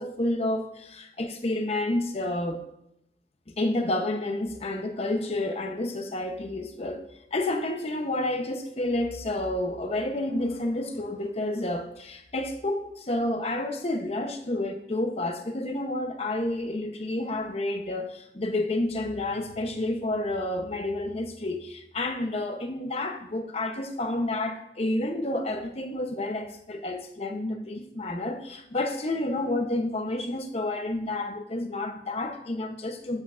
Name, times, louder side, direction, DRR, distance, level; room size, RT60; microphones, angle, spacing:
voice 1, 0.0-2.6 3.6-7.0 7.3-33.2, left 1 dB, 35° left, 0.8 m, -30 dB
11.5 x 8.4 x 2.5 m
head